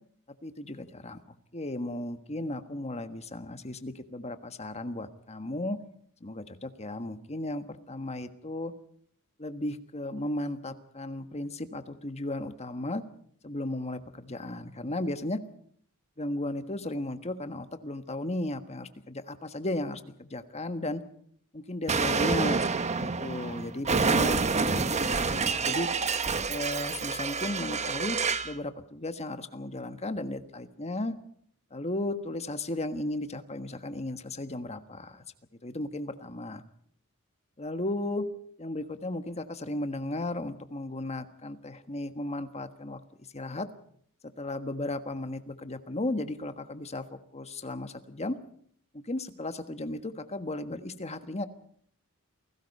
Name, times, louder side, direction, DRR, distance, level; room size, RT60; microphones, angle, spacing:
voice 1, 0.4-1.2 1.5-5.8 6.2-8.7 9.4-13.0 13.4-15.4 16.2-21.0 21.5-22.6 23.0-25.9 26.5-28.2 28.4-31.1 31.7-35.2 35.6-36.6 37.6-38.2 38.6-43.0 43.3-43.7 44.4-48.4 48.9-51.5, left 1 dB, 30° left, 9 dB, 1.4 m, -35 dB
Explosion, 21.9-28.5, right 4 dB, 30° right, 1.1 m, -28 dB
29.0 x 18.5 x 5.5 m, 0.63 s
head